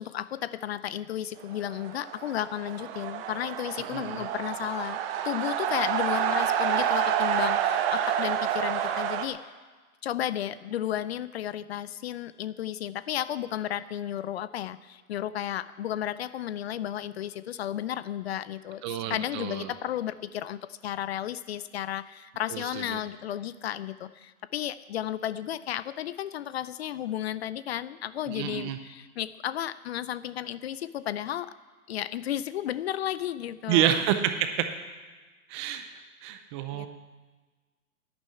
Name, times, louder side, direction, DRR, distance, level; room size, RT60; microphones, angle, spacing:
voice 1, 0.0-5.0 5.2-9.4 10.0-31.5 31.9-33.9 36.7-36.9, left 11 dB, 45° left, 16 dB, 0.5 m, -33 dB
sound 1, 1.5-9.3, right 9 dB, 40° right, 1.2 m, -28 dB
voice 2, 3.9-4.3 18.8-19.7 22.5-23.0 28.3-28.8 33.7-34.5 35.5-35.8 36.2-36.9, right 10 dB, 20° right, 8 dB, 0.5 m, -28 dB
11.5 x 9.7 x 8.4 m, 1.3 s
hypercardioid pair, 125°, 45 cm